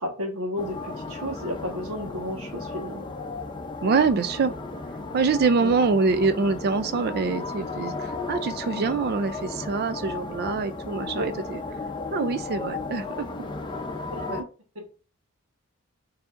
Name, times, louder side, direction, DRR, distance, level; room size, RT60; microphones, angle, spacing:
voice 1, 0.0-3.1 5.6-5.7 11.1-11.3 14.1-14.2 14.7-14.8, left 1 dB, 80° right, 1.3 m, -32 dB
sound 1, 0.6-14.4, left 3 dB, 20° left, 0.5 m, -35 dB
voice 2, 3.8-4.5 5.1-11.6 12.1-13.3 14.3-14.5, right 4 dB, 45° right, 0.4 m, -25 dB
4.8 x 2.7 x 2.5 m
head